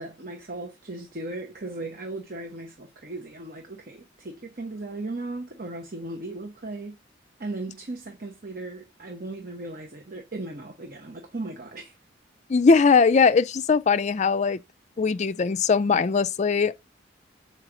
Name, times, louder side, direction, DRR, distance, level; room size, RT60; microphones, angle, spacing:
voice 1, 0.0-7.0 7.4-12.0, right 2 dB, 50° right, 1.0 m, -37 dB
voice 2, 12.5-14.6 15.0-16.8, left 5 dB, 35° left, 0.4 m, -20 dB
7.5 x 4.8 x 3.8 m
head